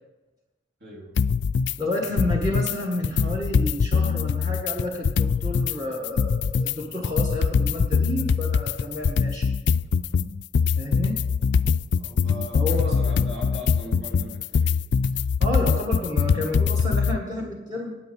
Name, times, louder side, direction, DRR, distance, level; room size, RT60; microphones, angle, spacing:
voice 1, 0.8-1.3 11.9-14.8, equal, 55° right, -2 dB, 3.5 m, -39 dB
sound 1, 1.2-1.7 2.0-2.7 3.0-5.7 6.0-17.2, left 5 dB, 60° left, 0.3 m, -23 dB
voice 2, 1.8-9.5 10.8-11.2 12.5-13.0 15.4-18.0, left 1 dB, 20° right, 0 dB, 1.4 m, -30 dB
9.6 x 8.8 x 8.1 m, 1.1 s
head